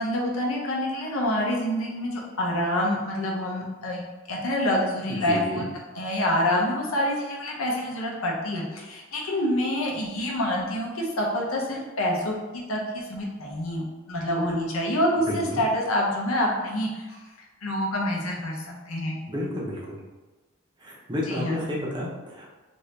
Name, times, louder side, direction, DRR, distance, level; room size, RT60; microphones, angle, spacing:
voice 1, 0.0-4.0 4.3-5.6 5.9-17.2 17.6-19.2 21.3-21.5, left 1 dB, 80° left, -2 dB, 0.7 m, -27 dB
voice 2, 5.2-5.7 15.2-15.6 19.3-20.0 20.8-22.6, left 1 dB, 20° right, -4 dB, 0.6 m, -31 dB
2.8 x 2.6 x 3.2 m, 1.2 s
head